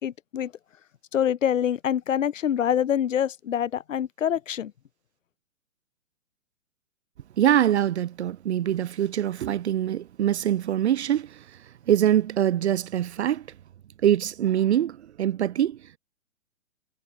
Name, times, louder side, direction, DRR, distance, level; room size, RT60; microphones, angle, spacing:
voice 1, 0.0-0.5 1.1-4.7, left 9 dB, 65° left, 1.1 m, -25 dB
voice 2, 7.4-11.4 11.9-13.5 14.0-15.8, right 11 dB, 50° right, 1.1 m, -24 dB
figure-of-eight pair, 130°, 41 cm